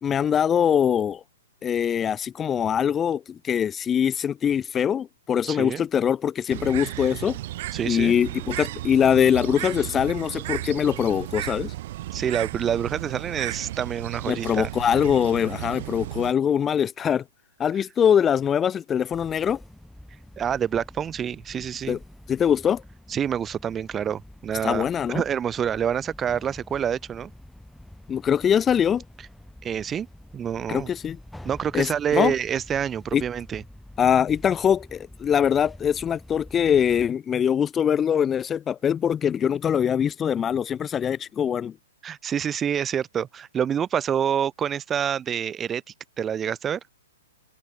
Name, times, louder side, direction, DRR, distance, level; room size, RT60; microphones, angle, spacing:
voice 1, 0.0-1.2 1.6-7.4 7.8-11.7 14.3-17.2 17.6-19.6 21.9-22.0 22.3-22.8 24.6-25.2 28.1-29.0 30.7-31.2 31.7-32.3 33.1-33.2 34.0-41.7, left 8 dB, 20° left, 0.6 m, -23 dB
voice 2, 5.5-5.8 7.7-8.1 12.1-14.7 20.4-22.0 23.1-27.3 29.6-30.1 30.3-30.9 31.4-33.6 42.0-45.8 46.2-46.8, right 8 dB, 20° right, 1.5 m, -27 dB
Bird, 6.5-16.3, right 16 dB, 50° right, 0.7 m, -34 dB
sound 1, 19.1-37.1, left 1 dB, ahead, 2.1 m, -47 dB
open air
hypercardioid pair, 125°, 0 cm